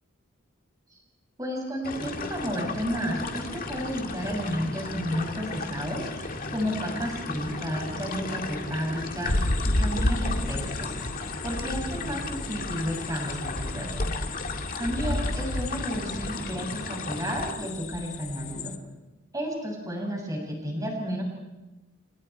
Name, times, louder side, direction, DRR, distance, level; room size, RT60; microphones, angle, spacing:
voice 1, 1.4-9.5 9.8-14.2 14.8-18.8 19.3-21.2, equal, 15° right, -1 dB, 6.9 m, -32 dB
sound 1, 1.8-17.5, left 3 dB, 40° left, 2.1 m, -35 dB
sound 2, 9.3-18.8, left 1 dB, 70° left, 1.7 m, -31 dB
30.0 x 29.5 x 4.7 m, 1.0 s
head